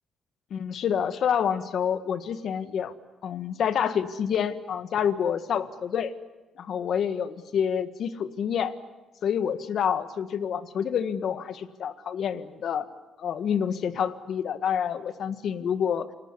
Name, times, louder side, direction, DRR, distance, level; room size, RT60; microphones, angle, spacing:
voice 1, 0.5-2.9 3.2-6.1 6.6-8.8 9.2-12.9 13.2-16.1, left 8 dB, 65° left, 12 dB, 1.6 m, -28 dB
28.5 x 19.0 x 9.9 m, 1.2 s
cardioid pair, 80°, 0 cm